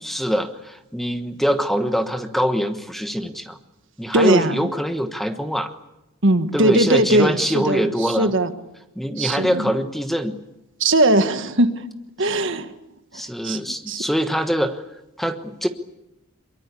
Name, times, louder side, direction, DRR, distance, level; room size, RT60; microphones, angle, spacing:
voice 1, 0.0-3.6 4.0-5.7 6.5-8.3 9.0-10.4 13.1-14.8 15.2-15.7, equal, ahead, 7 dB, 1.2 m, -23 dB
voice 2, 4.1-4.7 6.2-8.5 9.2-9.7 10.8-11.8 12.2-12.7 13.4-13.6 13.9-14.0, right 1 dB, 55° right, 9 dB, 1.6 m, -19 dB
23.5 x 23.0 x 8.4 m, 0.92 s
head